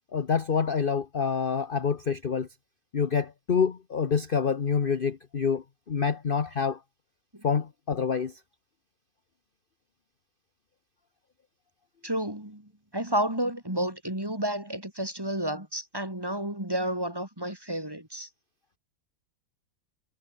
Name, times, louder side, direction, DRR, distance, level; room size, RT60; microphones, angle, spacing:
voice 1, 0.1-2.5 2.9-6.8 7.4-8.3, left 6 dB, 40° left, 1.1 m, -27 dB
voice 2, 12.0-18.3, right 1 dB, 15° right, 3.6 m, -31 dB
omnidirectional pair, 1.6 m